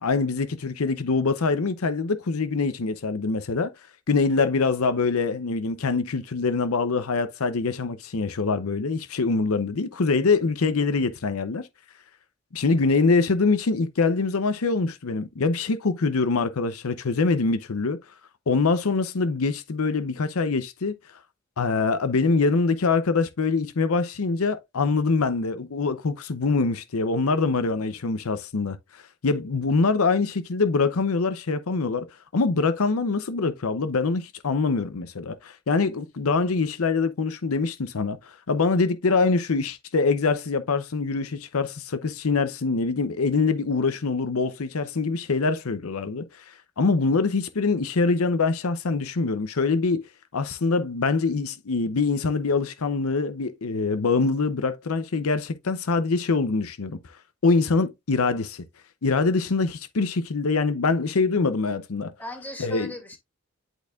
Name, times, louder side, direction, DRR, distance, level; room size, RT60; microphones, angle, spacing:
voice 1, 0.0-3.7 4.1-11.7 12.5-18.0 18.5-21.0 21.6-32.1 32.3-50.1 50.3-57.0 57.4-58.6 59.0-62.1 62.6-62.9, left 4 dB, 75° left, 0.7 m, -24 dB
voice 2, 62.2-63.2, left 1 dB, 10° left, 2.3 m, -40 dB
11.0 x 4.3 x 2.4 m
head